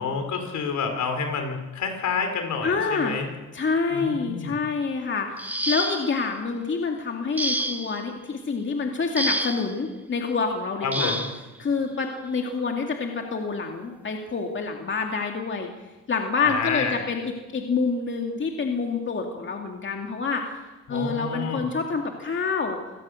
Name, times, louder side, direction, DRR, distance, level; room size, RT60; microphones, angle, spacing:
voice 1, 0.0-3.3 3.9-4.6 10.8-11.3 16.4-17.0 20.9-21.6, left 5 dB, 70° left, 5 dB, 4.5 m, -28 dB
voice 2, 2.6-3.2 3.5-11.2 11.6-15.7 16.1-20.6 20.9-22.8, left 4 dB, 40° left, 2 dB, 2.5 m, -27 dB
sound 1, 5.4-6.3 7.4-8.0 9.2-9.7 10.9-11.4 12.6-12.7 13.2-13.5, right 1 dB, 5° right, 1.4 m, -28 dB
27.0 x 18.0 x 6.5 m, 1.1 s
cardioid pair, 90°, 30 cm